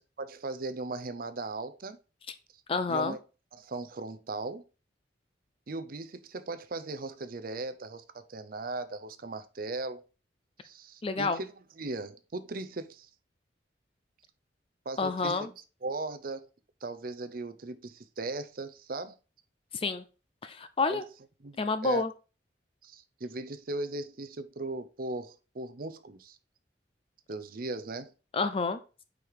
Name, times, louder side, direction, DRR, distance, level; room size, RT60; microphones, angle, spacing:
voice 1, 0.2-2.0 2.9-3.2 3.5-4.6 5.7-10.0 10.6-13.1 14.9-15.5 15.8-16.5 16.8-19.1 20.9-21.0 21.4-22.0 22.8-26.4 27.3-28.1, right 2 dB, 50° right, 0.6 m, -38 dB
voice 2, 2.7-3.2 11.0-11.4 15.0-15.5 19.7-20.0 20.4-21.0 21.6-22.1 28.3-28.8, left 4 dB, 30° left, 0.4 m, -29 dB
5.3 x 4.8 x 4.7 m
head